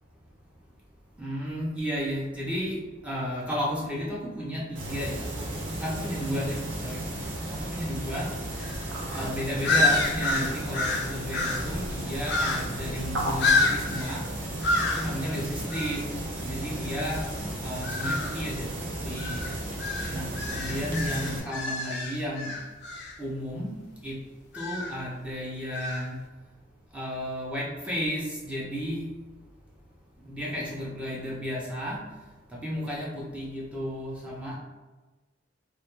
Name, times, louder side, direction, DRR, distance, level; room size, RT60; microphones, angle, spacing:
voice 1, 1.2-5.4 5.8-7.0 7.5-8.3 9.1-14.2 14.9-16.1 16.4-17.3 17.6-18.7 19.0-19.5 20.1-22.5 23.2-23.7 24.0-24.1 24.5-26.2 26.9-29.1 30.2-32.0 32.6-34.6, equal, 5° right, -6 dB, 0.4 m, -33 dB
sound 1, 4.8-21.4, right 1 dB, 65° right, 0.5 m, -34 dB
sound 2, 8.6-8.8 9.1-9.3 9.6-11.7 12.2-12.8 13.4-14.2 14.6-15.1 15.7-16.0 17.8-18.4 19.2-23.1 24.5-25.0 25.7-26.1, left 2 dB, 60° left, 0.4 m, -28 dB
2.1 x 2.1 x 2.9 m, 1.2 s
head